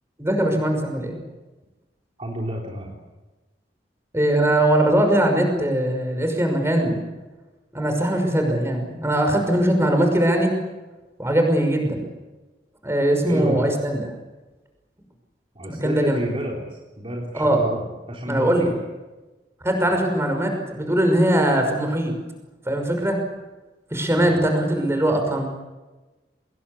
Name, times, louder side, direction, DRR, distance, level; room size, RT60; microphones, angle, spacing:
voice 1, 0.2-1.2 4.1-7.0 7.7-10.5 11.2-12.1 12.8-14.0 15.7-16.2 17.3-17.6 18.3-18.7 19.6-22.1 22.7-23.2 23.9-25.5, right 1 dB, 15° right, 4 dB, 5.8 m, -21 dB
voice 2, 2.2-2.9 13.3-13.7 15.5-18.7 19.8-20.0 24.2-24.4, equal, 35° right, -2 dB, 3.8 m, -30 dB
25.0 x 21.0 x 8.5 m, 1.2 s
head